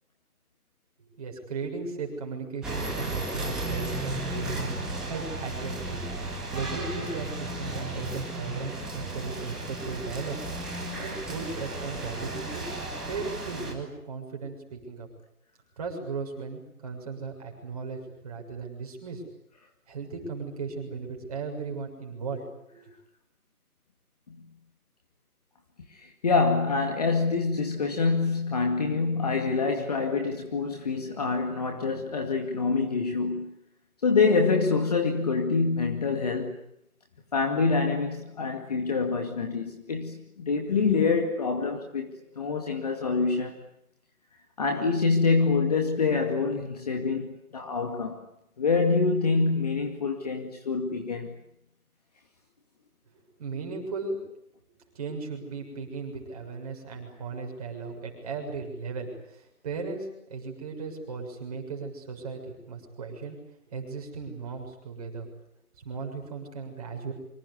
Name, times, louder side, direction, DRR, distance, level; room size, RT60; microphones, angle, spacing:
voice 1, 1.1-4.8 5.0-6.0 6.5-10.4 11.0-12.6 13.1-15.1 15.8-19.2 19.9-22.8 53.4-54.3 54.9-63.4 63.7-65.3 65.8-67.1, right 4 dB, 25° right, 7.0 m, -36 dB
sound 1, 2.6-13.7, right 2 dB, ahead, 2.2 m, -34 dB
voice 2, 25.9-33.6 34.0-36.6 37.3-43.5 44.6-48.2 48.6-51.3, left 4 dB, 25° left, 2.3 m, -26 dB
27.5 x 25.5 x 8.6 m
figure-of-eight pair, 165°, 45 cm